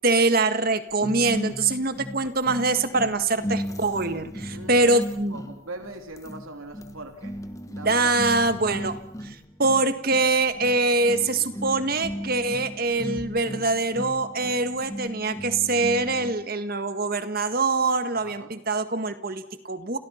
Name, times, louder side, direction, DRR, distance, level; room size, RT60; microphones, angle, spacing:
voice 1, 0.0-5.4 7.8-9.0 9.2-20.0, right 3 dB, 45° right, 10 dB, 1.8 m, -24 dB
sound 1, 1.0-16.5, equal, 15° left, 1.4 m, -36 dB
voice 2, 4.5-5.0 5.3-7.3 7.7-8.1 8.6-8.9 18.2-18.5, right 2 dB, 85° right, 5 dB, 3.5 m, -41 dB
29.5 x 28.5 x 5.9 m, 0.65 s
head